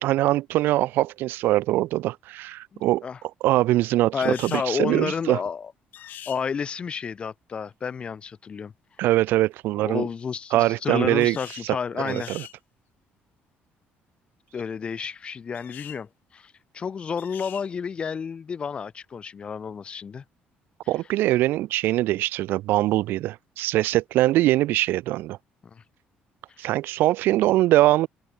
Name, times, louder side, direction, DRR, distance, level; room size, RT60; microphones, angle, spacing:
voice 1, 0.0-3.1 3.4-5.4 9.0-10.1 10.5-11.4 11.6-12.4 20.9-25.4 26.6-28.1, right 16 dB, 75° right, 0.5 m, -22 dB
voice 2, 2.7-3.2 4.1-5.7 6.3-8.7 9.8-12.3 14.5-20.2 25.7-25.8 26.6-26.7, left 6 dB, 30° left, 1.0 m, -31 dB
sound 1, 4.2-4.7 5.9-6.4 11.2-11.7 12.1-12.6 15.5-16.0 17.2-17.7, left 12 dB, 60° left, 1.9 m, -42 dB
open air
cardioid pair, 150°, 4 cm